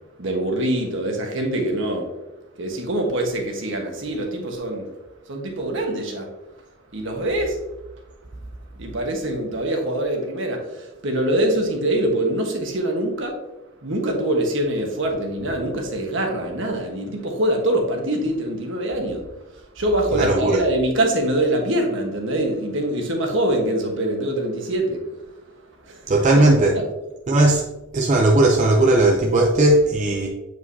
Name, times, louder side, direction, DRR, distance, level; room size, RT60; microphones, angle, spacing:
voice 1, 0.2-2.1 2.6-4.9 5.3-6.3 6.9-7.6 8.8-13.3 13.8-19.2 19.8-25.0 25.9-26.0 26.7-26.8, right 1 dB, 65° right, 1.3 m, -24 dB
voice 2, 20.1-20.6 26.1-26.8 27.3-27.6 27.9-30.3, right 2 dB, 35° right, 0.6 m, -17 dB
8.0 x 4.8 x 2.7 m
head